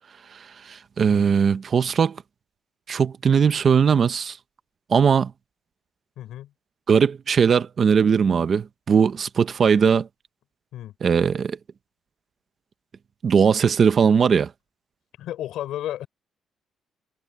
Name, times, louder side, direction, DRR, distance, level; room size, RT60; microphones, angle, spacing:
voice 1, 0.7-2.2 2.9-4.4 4.9-5.3 6.9-10.1 11.0-11.6 13.2-14.5, right 6 dB, 35° right, 0.8 m, -19 dB
voice 2, 6.2-6.5 10.7-10.9 15.2-16.1, left 13 dB, 80° left, 6.0 m, -33 dB
cardioid pair, 170°, 0 cm